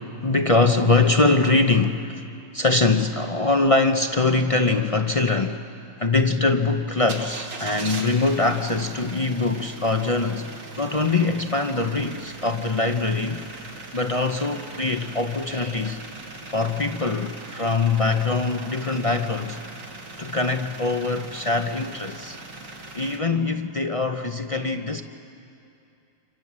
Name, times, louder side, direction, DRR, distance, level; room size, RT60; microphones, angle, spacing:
voice 1, 0.0-2.3 2.5-5.7 6.0-10.5 10.8-13.4 13.9-16.0 16.5-19.6 20.2-22.4 22.9-25.0, left 3 dB, 45° left, 6 dB, 0.4 m, -23 dB
sound 1, 7.0-23.2, right 2 dB, 85° right, 2.9 m, -40 dB
27.5 x 27.0 x 7.5 m, 2.7 s
omnidirectional pair, 1.9 m